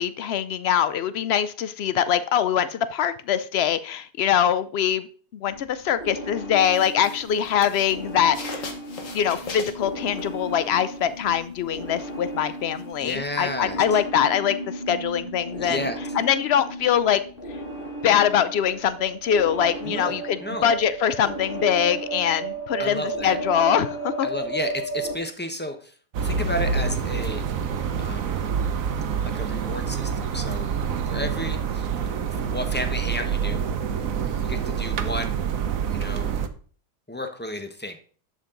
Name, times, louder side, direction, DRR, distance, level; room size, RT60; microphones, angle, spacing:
voice 1, 0.0-5.1 5.3-8.7 9.1-15.8 16.2-17.2 18.0-24.3, left 9 dB, 80° left, 0.5 m, -23 dB
sound 1, 5.5-25.2, right 2 dB, 35° left, 2.3 m, -34 dB
sound 2, 6.6-10.8 11.2-13.5, left 4 dB, 55° left, 1.7 m, -39 dB
voice 2, 13.0-14.0 15.6-16.0 19.8-20.7 22.8-23.4 24.2-27.4 28.0-28.4 29.2-30.7 31.1-31.9 32.4-33.7 34.4-35.4 35.9-36.3 37.1-38.0, left 1 dB, 10° left, 0.8 m, -32 dB
sound 3, 26.1-36.5, right 7 dB, 60° right, 1.2 m, -27 dB
11.5 x 7.4 x 3.9 m
omnidirectional pair, 1.7 m